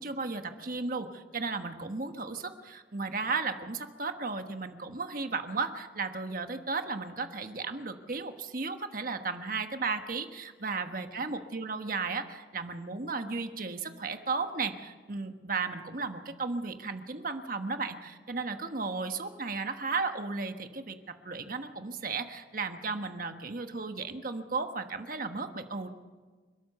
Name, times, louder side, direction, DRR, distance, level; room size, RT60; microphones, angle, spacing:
voice 1, 0.0-20.9 21.2-25.9, right 4 dB, 50° right, 7 dB, 1.3 m, -35 dB
29.5 x 13.0 x 6.8 m, 1.4 s
head